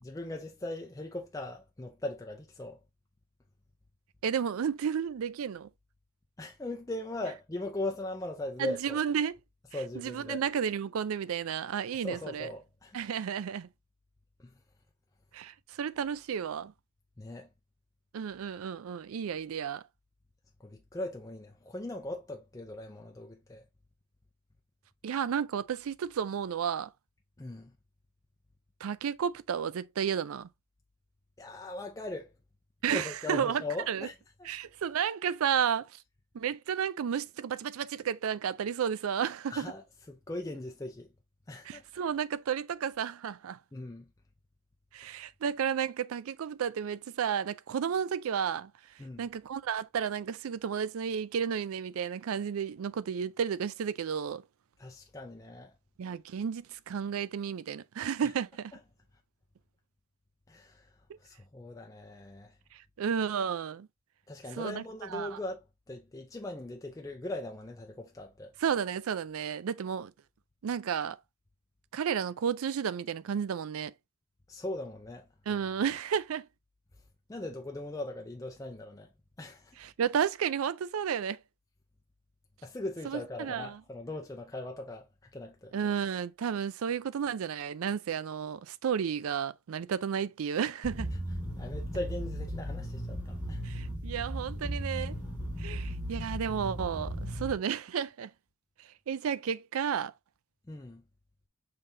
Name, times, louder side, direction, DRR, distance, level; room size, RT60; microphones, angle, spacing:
voice 1, 0.0-2.8 6.4-9.0 9.7-10.4 12.0-13.0 14.4-14.5 17.2-17.5 20.6-23.6 27.4-27.7 31.4-32.3 32.9-34.1 34.4-34.5 39.5-39.8 40.1-41.1 41.5-41.8 43.7-44.1 49.0-49.3 54.8-55.7 60.5-60.9 61.2-62.5 64.3-68.5 74.5-75.2 77.3-79.1 79.4-79.8 82.6-85.1 85.3-85.7 91.6-93.6 100.7-101.0, left 2 dB, 15° left, 0.5 m, -39 dB
voice 2, 4.2-5.7 8.6-9.4 10.0-12.5 12.9-13.7 15.3-16.7 18.1-19.8 25.0-26.9 28.8-30.5 32.8-34.1 34.4-36.0 36.3-39.7 41.6-43.6 44.9-48.7 49.2-54.4 56.0-58.7 62.7-63.9 64.5-64.8 65.1-65.4 68.6-70.1 70.6-71.2 71.9-73.9 75.5-76.5 79.8-81.4 83.0-83.8 85.7-91.1 93.6-95.2 95.6-98.3 99.1-100.1, right 7 dB, 70° right, 0.4 m, -32 dB
sound 1, 90.8-97.5, equal, 5° right, 1.4 m, -36 dB
5.6 x 3.3 x 2.6 m
head